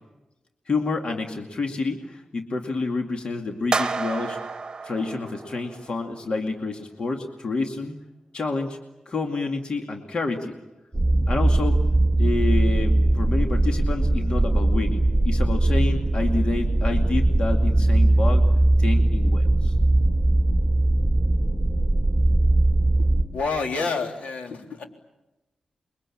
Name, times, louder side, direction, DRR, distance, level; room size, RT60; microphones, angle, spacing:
voice 1, 0.7-4.4 4.8-8.0 8.3-8.8 9.1-10.6 11.3-11.8 12.2-18.4 18.8-19.7, left 3 dB, 50° left, 3 dB, 2.5 m, -28 dB
sound 1, 3.7-5.9, right 4 dB, 35° right, 1.2 m, -30 dB
sound 2, 10.9-23.2, right 1 dB, 5° right, 2.9 m, -20 dB
voice 2, 23.3-24.8, left 4 dB, 80° left, 3 dB, 3.9 m, -28 dB
29.0 x 23.5 x 8.7 m, 0.98 s
wide cardioid pair, 155°, 2 cm